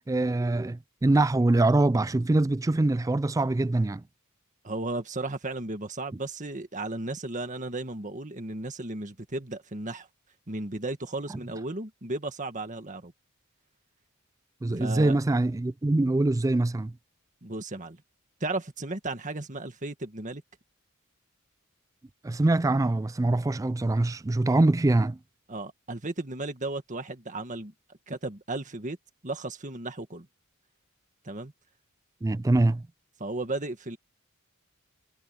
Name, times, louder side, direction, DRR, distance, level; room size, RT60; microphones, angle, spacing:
voice 1, 0.1-4.0 14.6-16.9 22.2-25.2 32.2-32.9, right 2 dB, 15° right, 0.3 m, -24 dB
voice 2, 4.6-10.1 10.5-13.1 14.7-15.2 17.4-18.0 18.4-20.4 25.5-27.7 28.1-29.0 29.2-30.3 31.2-31.5 33.2-34.0, right 2 dB, 35° right, 1.8 m, -34 dB
head